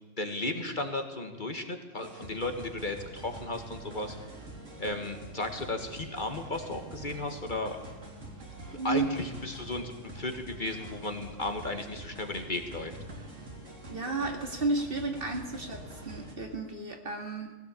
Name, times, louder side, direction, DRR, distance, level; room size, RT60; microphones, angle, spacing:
voice 1, 0.2-4.2 4.8-7.8 8.6-13.0, left 2 dB, 40° left, 5 dB, 1.9 m, -35 dB
sound 1, 2.0-16.4, right 2 dB, 70° right, 3.8 m, -45 dB
voice 2, 13.9-17.6, right 3 dB, 45° right, 3 dB, 2.4 m, -32 dB
19.5 x 17.0 x 8.4 m, 1.2 s
omnidirectional pair, 1.3 m